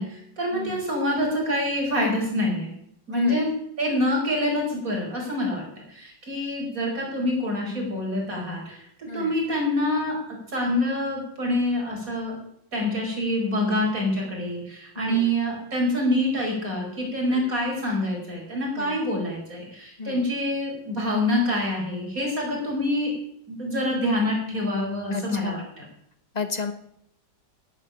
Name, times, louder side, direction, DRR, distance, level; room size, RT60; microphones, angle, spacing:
voice 1, 0.0-2.7 3.1-5.6 5.9-8.8 9.1-10.2 10.5-12.4 12.7-23.1 23.5-25.8, left 1 dB, 50° right, -1 dB, 5.4 m, -26 dB
voice 2, 0.5-0.8 3.1-3.4 9.1-9.3 15.0-15.3 17.3-17.4 18.8-19.0 20.0-20.2 25.1-25.6 26.3-26.7, left 4 dB, 25° left, 8 dB, 1.2 m, -33 dB
11.0 x 9.1 x 10.0 m, 0.72 s
omnidirectional pair, 1.9 m